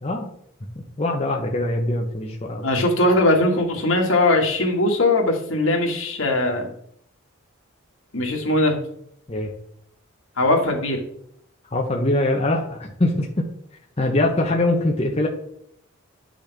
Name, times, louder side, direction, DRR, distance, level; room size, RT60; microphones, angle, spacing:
voice 1, 0.0-0.3 1.0-2.8 9.3-9.5 11.7-13.5 14.0-15.3, left 2 dB, 30° left, 0 dB, 0.9 m, -23 dB
voice 2, 2.6-6.7 8.1-8.8 10.4-11.0, left 2 dB, 80° left, 1 dB, 1.9 m, -20 dB
10.0 x 6.2 x 3.5 m, 0.69 s
head